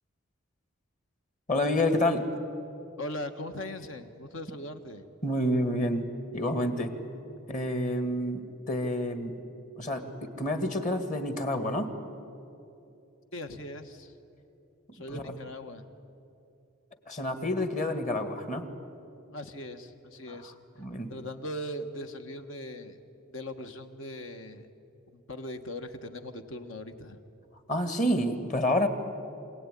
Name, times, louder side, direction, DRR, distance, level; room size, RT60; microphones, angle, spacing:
voice 1, 1.5-2.3 5.2-6.1 6.3-6.9 7.5-9.4 9.8-12.0 15.1-15.2 17.1-18.7 20.8-21.1 27.7-28.9, left 1 dB, 35° left, 8 dB, 1.9 m, -28 dB
voice 2, 3.0-5.1 13.3-14.1 14.9-15.9 19.3-20.5 21.1-23.0 23.3-24.7 25.1-27.2, left 1 dB, 65° left, 8 dB, 1.5 m, -40 dB
26.0 x 18.0 x 10.0 m, 2.9 s
head